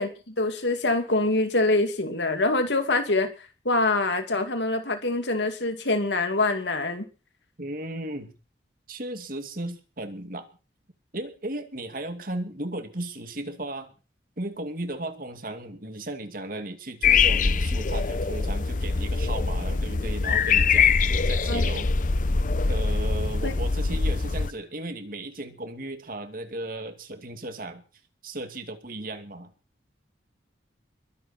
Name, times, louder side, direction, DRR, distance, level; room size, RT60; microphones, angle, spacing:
voice 1, 0.0-3.3 3.6-7.0 21.5-21.7 23.4-23.5, left 2 dB, 75° left, 6 dB, 2.6 m, -25 dB
voice 2, 7.6-8.3 8.9-10.5 11.1-13.9 14.4-21.9 22.7-27.8 28.2-29.5, right 1 dB, 50° right, 7 dB, 2.4 m, -35 dB
sound 1, 17.0-24.5, left 5 dB, 45° left, 0.7 m, -23 dB
22.5 x 11.0 x 4.4 m, 0.34 s
head